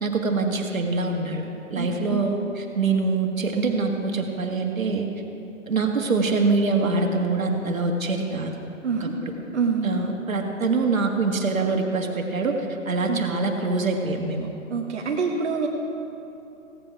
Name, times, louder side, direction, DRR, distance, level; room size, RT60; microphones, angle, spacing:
voice 1, 0.0-5.1 5.7-8.5 9.0-9.3 9.8-14.5, right 3 dB, 80° right, 3 dB, 1.9 m, -24 dB
voice 2, 1.8-2.3 8.8-9.1 9.5-10.0 13.1-13.2 14.7-15.7, right 5 dB, 55° right, 0 dB, 1.2 m, -26 dB
17.0 x 8.1 x 4.7 m, 3.0 s
hypercardioid pair, 160°, 40 cm